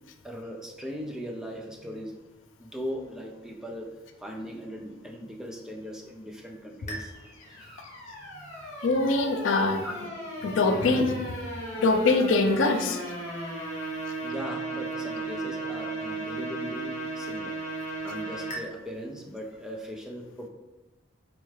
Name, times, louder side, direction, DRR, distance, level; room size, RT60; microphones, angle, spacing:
voice 1, 0.2-2.1 2.6-7.1 7.6-7.8 8.2-8.7 9.8-10.2 14.2-20.5, equal, 5° right, 0 dB, 0.4 m, -39 dB
sound 1, 6.9-18.6, right 2 dB, 40° left, 0.8 m, -36 dB
voice 2, 8.8-9.8 10.4-11.2 11.8-13.0, left 3 dB, 80° left, 6 dB, 0.4 m, -23 dB
4.3 x 2.3 x 3.2 m, 1.1 s
head